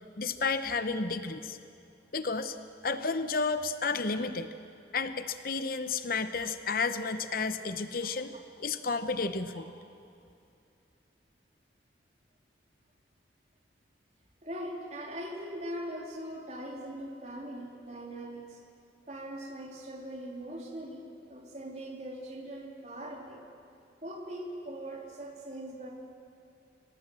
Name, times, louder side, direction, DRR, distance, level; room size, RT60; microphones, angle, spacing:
voice 1, 0.2-1.6 2.1-2.6 2.8-4.5 4.9-8.3 8.6-9.7, left 4 dB, 50° left, 10 dB, 0.8 m, -31 dB
voice 2, 14.4-18.6 19.1-23.4 24.0-25.9, right 1 dB, 35° right, 0 dB, 3.1 m, -41 dB
25.5 x 18.5 x 7.5 m, 2.6 s
head